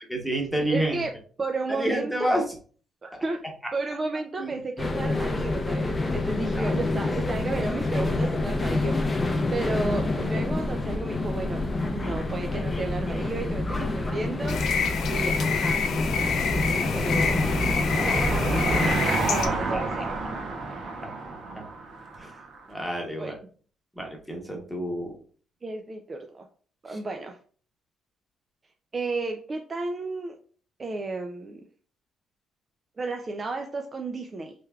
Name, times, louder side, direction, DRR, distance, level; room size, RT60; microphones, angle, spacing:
voice 1, 0.1-1.0 1.7-2.4 4.4-4.5 6.5-6.7 17.9-18.2 19.4-19.8 21.0-21.1 21.6-21.7 22.2-22.3 22.7-23.3 24.0-25.1, right 1 dB, ahead, 1 dB, 1.0 m, -29 dB
voice 2, 0.7-1.1 1.4-2.4 3.0-3.4 3.7-11.7 11.9-15.9 16.7-17.5 18.0-18.8 19.3-20.2 23.2-23.3 25.6-26.5 26.8-27.4 28.9-30.4 30.8-31.6 33.0-34.5, right 3 dB, 35° right, 3 dB, 0.4 m, -33 dB
sound 1, 4.8-19.0, left 2 dB, 25° left, 0.6 m, -27 dB
sound 2, 14.5-19.5, left 6 dB, 70° left, 0.5 m, -28 dB
Car passing by / Engine, 15.8-22.6, right 3 dB, 60° right, 0.8 m, -31 dB
3.4 x 3.2 x 2.3 m, 0.42 s
cardioid pair, 90°, 0 cm